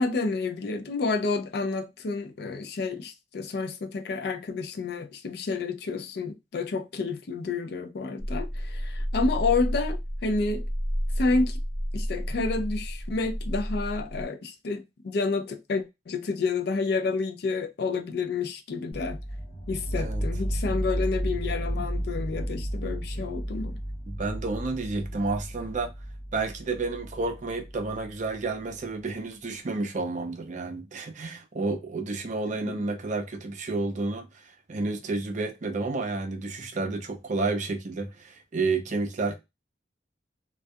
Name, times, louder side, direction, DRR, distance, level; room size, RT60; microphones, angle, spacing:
voice 1, 0.0-10.7 11.2-11.6 11.9-19.2 19.7-23.7 32.7-32.8, left 3 dB, 60° left, 0.4 m, -29 dB
sound 1, 8.2-14.3, equal, 5° left, 0.7 m, -31 dB
sound 2, 18.9-28.7, equal, 45° left, 1.1 m, -33 dB
voice 2, 24.1-25.9 26.3-34.3 34.7-39.4, right 3 dB, 45° right, 0.5 m, -30 dB
2.3 x 2.3 x 2.6 m
head